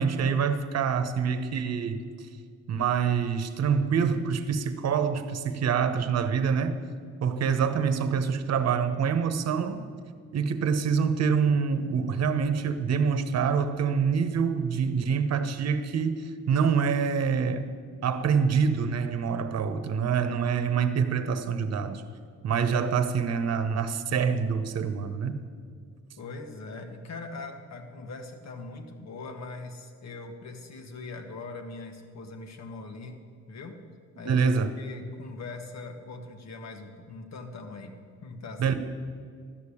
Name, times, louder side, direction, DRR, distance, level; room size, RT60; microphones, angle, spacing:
voice 1, 0.0-2.1 2.7-6.8 7.2-9.8 10.3-17.7 18.0-22.0 22.4-25.4 34.3-34.7 38.6-38.7, right 6 dB, 55° right, 10 dB, 1.1 m, -26 dB
voice 2, 26.2-33.8 34.2-34.5 34.8-38.0 38.2-38.8, left 3 dB, 60° left, 5 dB, 1.7 m, -41 dB
12.5 x 6.8 x 9.9 m, 2.1 s
cardioid pair, 90°, 30 cm